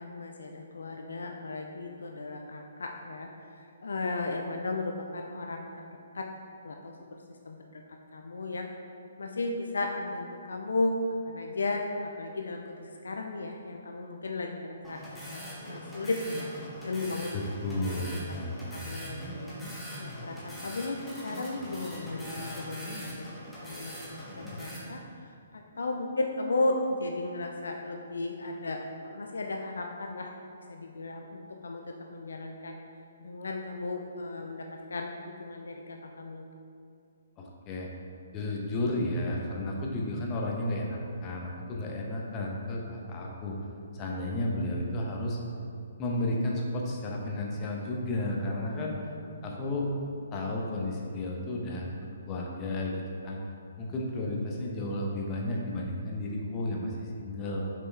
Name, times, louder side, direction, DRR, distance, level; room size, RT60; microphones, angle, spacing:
voice 1, 0.0-5.8 6.1-6.3 6.6-7.0 7.4-7.8 8.1-8.7 9.2-11.0 11.2-16.5 16.8-17.4 18.7-19.5 20.0-23.3 23.6-30.3 30.7-32.8 33.2-36.4 49.2-49.7, left 2 dB, 65° left, 2 dB, 0.5 m, -35 dB
sound 1, 14.8-24.8, equal, ahead, 1.4 m, -41 dB
voice 2, 17.3-18.7 37.4-37.9 38.3-43.6 43.9-45.4 46.0-49.0 49.4-49.9 50.3-51.9 52.3-53.4 53.8-57.6, left 1 dB, 25° left, -2 dB, 1.0 m, -32 dB
6.5 x 5.2 x 3.4 m, 2.4 s
figure-of-eight pair, 130°, 0 cm